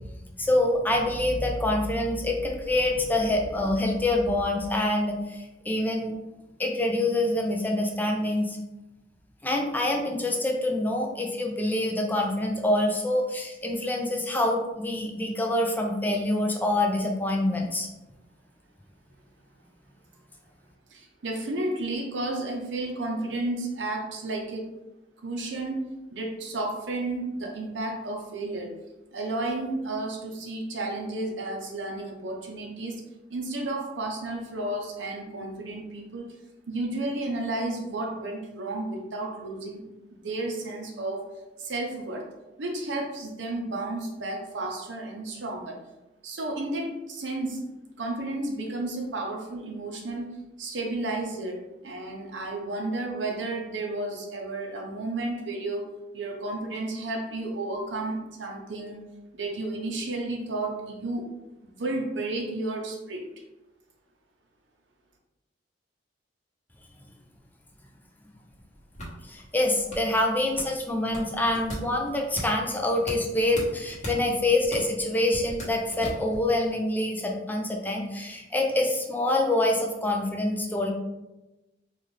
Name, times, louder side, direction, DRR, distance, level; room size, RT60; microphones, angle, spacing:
voice 1, 0.4-6.1 6.6-8.6 9.4-17.9 69.2-80.9, left 1 dB, 10° left, 1 dB, 0.4 m, -26 dB
voice 2, 20.9-24.7 25.2-25.8 26.1-28.8 29.1-33.0 33.3-36.3 36.7-39.8 40.1-41.3 41.6-42.3 42.6-45.8 46.2-47.6 48.0-50.3 50.6-59.0 59.3-61.3 61.6-63.3, right 2 dB, 90° right, 2 dB, 0.7 m, -32 dB
sound 1, 68.5-76.5, equal, 40° left, 1.1 m, -40 dB
4.2 x 2.4 x 3.2 m, 1.0 s
head